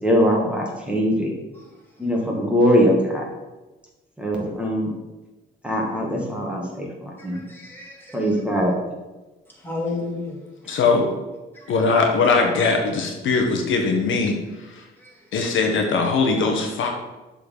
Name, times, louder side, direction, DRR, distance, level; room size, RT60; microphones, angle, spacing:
voice 1, 0.0-1.3 2.0-3.3 4.2-4.9 5.6-7.4 8.1-8.7, equal, 5° right, -2 dB, 2.0 m, -21 dB
voice 2, 7.2-8.3 9.6-10.4 11.5-11.7 15.0-15.1, left 3 dB, 10° left, -3 dB, 2.9 m, -32 dB
voice 3, 10.6-11.1 11.7-14.4 15.3-16.9, left 4 dB, 75° left, 3 dB, 1.3 m, -20 dB
7.3 x 4.4 x 6.7 m, 1.1 s
cardioid pair, 90°, 20 cm